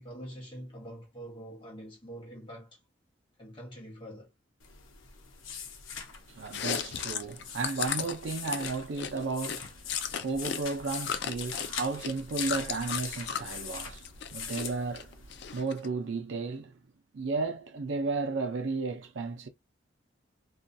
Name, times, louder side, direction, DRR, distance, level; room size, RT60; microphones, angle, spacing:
voice 1, 0.0-2.8 3.4-4.3, equal, 25° left, 1.1 m, -45 dB
sound 1, 4.6-15.6, left 6 dB, 90° left, 0.7 m, -42 dB
voice 2, 6.3-16.8 17.1-19.5, right 3 dB, 70° right, 0.5 m, -34 dB
Chewing mastication, 6.5-10.6 10.9-13.5 13.9-14.7 15.0-15.9, left 8 dB, 55° left, 0.3 m, -35 dB
2.4 x 2.2 x 2.6 m
head